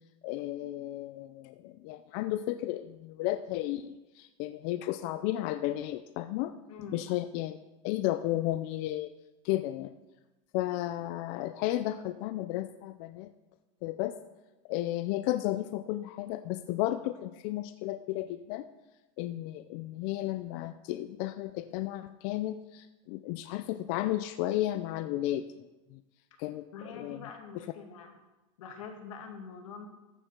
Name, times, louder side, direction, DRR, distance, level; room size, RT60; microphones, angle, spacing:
voice 1, 0.2-6.5 6.9-7.6 7.8-9.1 9.4-9.9 10.5-13.3 13.8-14.1 14.7-18.6 19.2-26.0 26.4-27.3, left 15 dB, 45° left, 10 dB, 0.5 m, -33 dB
voice 2, 26.3-28.1 28.6-29.9, left 5 dB, 85° left, 4 dB, 2.3 m, -45 dB
14.0 x 6.6 x 6.0 m, 1.1 s
supercardioid pair, 155°, 16 cm